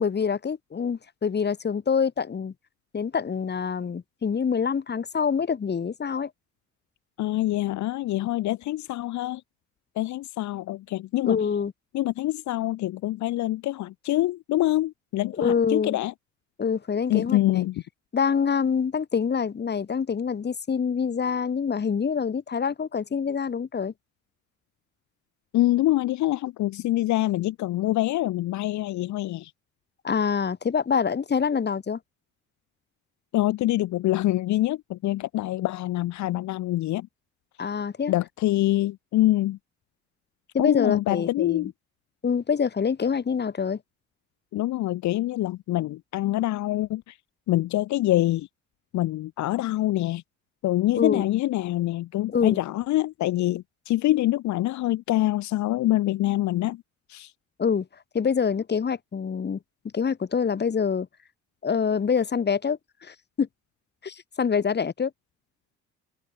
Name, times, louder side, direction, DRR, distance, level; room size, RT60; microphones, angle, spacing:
voice 1, 0.0-2.5 2.9-6.3 11.2-11.7 15.4-16.0 16.6-17.6 18.1-23.9 30.0-32.0 37.6-38.1 40.5-41.7 42.2-43.8 50.9-51.3 52.3-52.6 57.6-57.9 58.1-59.6 59.9-61.1 61.6-63.5 64.0-65.1, left 6 dB, 35° left, 6.1 m, -26 dB
voice 2, 7.2-9.4 9.9-11.4 11.9-16.1 17.1-17.8 25.5-29.5 33.3-37.1 38.1-39.6 40.6-41.7 44.5-47.1 47.5-48.5 48.9-50.2 50.6-56.8 57.1-57.3, left 15 dB, 75° left, 3.2 m, -25 dB
cardioid pair, 100°, 29 cm